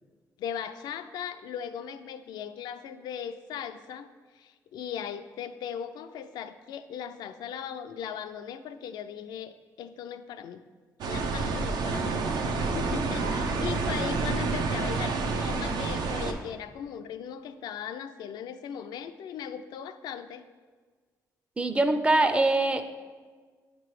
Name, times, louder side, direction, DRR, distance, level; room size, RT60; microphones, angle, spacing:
voice 1, 0.4-10.6 11.1-20.4, left 8 dB, 90° left, 9 dB, 0.3 m, -38 dB
sound 1, 11.0-16.3, right 4 dB, 85° right, 0.5 m, -29 dB
voice 2, 21.6-22.8, right 2 dB, 15° right, 8 dB, 0.4 m, -23 dB
8.8 x 3.0 x 4.6 m, 1.5 s
cardioid pair, 115°, 7 cm